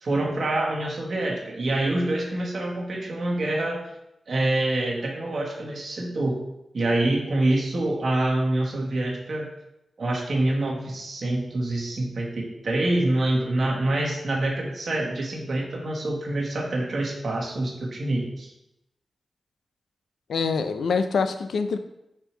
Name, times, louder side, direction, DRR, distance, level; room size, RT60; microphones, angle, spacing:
voice 1, 0.0-3.8 4.3-6.4 6.7-9.5 10.0-18.5, right 1 dB, 65° right, -1 dB, 1.2 m, -26 dB
voice 2, 20.3-21.8, left 5 dB, 80° left, 10 dB, 0.3 m, -25 dB
4.4 x 2.7 x 4.4 m, 0.87 s
cardioid pair, 45°, 0 cm